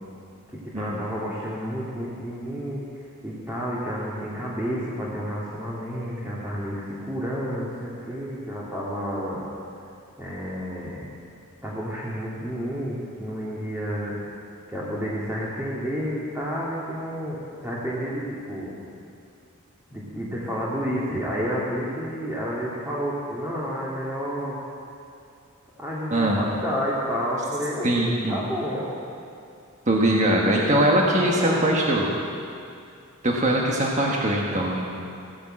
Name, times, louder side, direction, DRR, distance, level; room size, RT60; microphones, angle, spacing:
voice 1, 0.6-2.8 3.2-9.4 10.2-11.0 11.6-14.2 14.7-18.7 19.9-24.6 25.8-28.9 30.4-31.7, equal, 10° right, -8 dB, 2.2 m, -30 dB
voice 2, 26.1-26.4 27.8-28.4 29.9-32.1 33.2-34.9, right 1 dB, 35° right, -2 dB, 1.4 m, -21 dB
15.5 x 10.0 x 7.7 m, 2.5 s
head